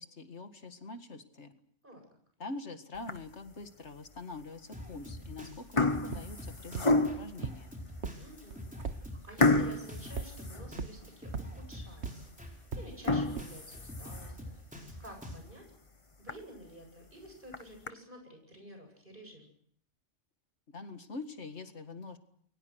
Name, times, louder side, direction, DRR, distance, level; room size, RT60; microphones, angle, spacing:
voice 1, 0.0-1.6 2.4-7.7 20.7-22.2, left 3 dB, 70° left, 8 dB, 2.2 m, -44 dB
sound 1, 3.0-3.5 4.1-4.2 5.0-5.3 5.5-7.4 8.0-8.1 8.5-8.6 9.4-11.2 11.6-11.7 12.2-12.3 12.9-14.5 15.0-15.1 15.5-15.6 15.9-16.0 16.3-16.4 17.3-17.9, left 2 dB, 25° left, 1.3 m, -30 dB
Drum kit, 4.7-15.4, left 1 dB, 5° right, 4.6 m, -46 dB
sound 2, 6.1-6.2 6.8-6.9 7.4-7.5 8.0-8.1 8.5-9.0 9.6-9.7 10.2-10.3 10.8-10.9 11.3-11.4 12.0-12.1 12.7-12.8 13.4-13.5, right 5 dB, 70° right, 1.5 m, -35 dB
voice 2, 8.2-14.6 15.0-15.7 16.2-19.5, equal, 45° right, 4 dB, 8.4 m, -51 dB
29.5 x 22.5 x 6.4 m, 0.64 s
omnidirectional pair, 1.2 m